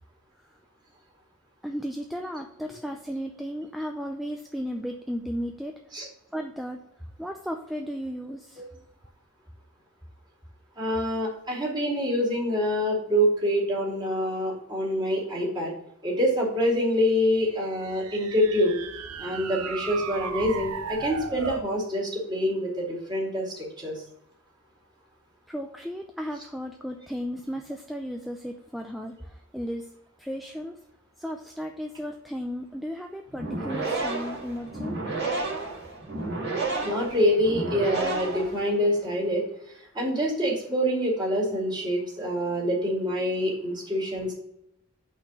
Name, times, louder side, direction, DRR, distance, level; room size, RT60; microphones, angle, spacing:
voice 1, 1.6-5.7 6.3-6.9 7.2-8.6 25.5-29.9 30.2-30.8 31.2-35.0, equal, ahead, 3 dB, 0.4 m, -35 dB
voice 2, 10.8-15.7 16.0-18.8 19.2-24.0 36.8-39.4 39.9-44.3, equal, 20° right, -5 dB, 2.6 m, -26 dB
sound 1, 17.3-21.7, right 6 dB, 85° right, 0.6 m, -36 dB
sound 2, 33.3-39.0, right 3 dB, 55° right, 2.1 m, -31 dB
5.5 x 4.3 x 6.1 m, 0.79 s
head